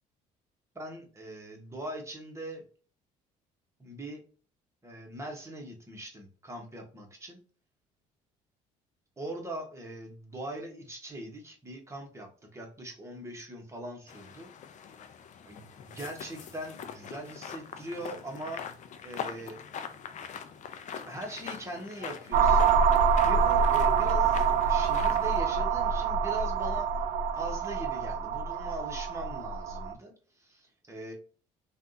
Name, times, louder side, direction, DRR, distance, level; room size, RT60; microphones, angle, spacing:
voice 1, 0.7-2.6 3.8-4.2 4.8-7.4 9.2-14.5 15.4-18.6 19.0-19.6 21.1-22.7 23.2-26.9 27.4-31.1, right 1 dB, 15° right, 1 dB, 1.2 m, -41 dB
sound 1, 14.1-25.4, left 7 dB, 50° left, 0.5 m, -43 dB
sound 2, 22.3-29.9, right 6 dB, 60° right, 0.4 m, -26 dB
3.4 x 2.5 x 2.7 m, 0.39 s
supercardioid pair, 75°, 16 cm